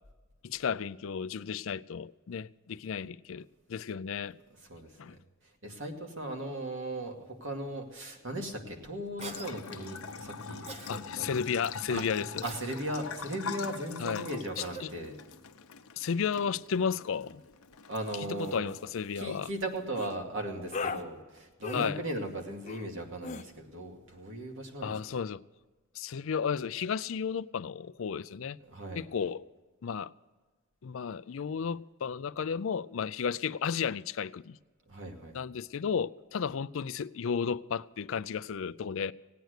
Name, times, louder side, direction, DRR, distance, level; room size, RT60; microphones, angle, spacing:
voice 1, 0.4-4.4 5.0-5.1 10.9-12.4 14.0-14.3 14.6-14.9 16.0-17.4 18.4-19.5 21.7-22.0 24.8-25.4 25.9-28.6 29.0-29.5 29.8-30.1 30.8-34.6 35.3-39.1, left 6 dB, 65° left, 0.4 m, -33 dB
voice 2, 4.7-5.2 5.6-11.3 11.9-12.0 12.4-15.2 17.9-18.7 19.2-24.9 28.6-29.0 34.9-35.4, right 1 dB, 60° right, 2.3 m, -37 dB
Bathtub (filling or washing) / Trickle dribble, 9.2-20.1, left 5 dB, 85° left, 0.8 m, -44 dB
Cough, 9.2-9.5 10.6-11.0 12.4-12.8 14.5-14.9, right 4 dB, 30° right, 0.9 m, -43 dB
sound 1, 18.0-18.2 18.5-18.8 20.0-20.1 20.7-21.0 21.6-21.9 22.7-22.9 23.2-23.4, left 4 dB, 35° left, 0.7 m, -37 dB
18.0 x 9.3 x 6.5 m
head